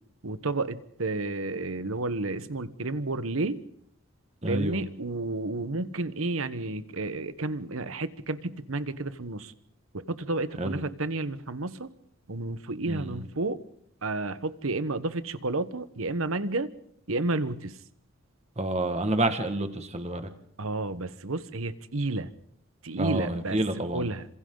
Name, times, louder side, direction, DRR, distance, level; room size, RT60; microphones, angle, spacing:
voice 1, 0.2-3.6 4.5-9.5 9.9-11.9 12.3-13.6 14.0-16.7 17.1-17.7 20.6-22.3 22.8-23.6 23.9-24.3, right 2 dB, 75° right, 13 dB, 1.2 m, -31 dB
voice 2, 4.4-4.8 10.6-10.8 12.9-13.2 18.6-20.2 23.0-24.1, right 1 dB, 30° right, 8 dB, 1.9 m, -29 dB
27.5 x 26.5 x 4.0 m, 0.67 s
head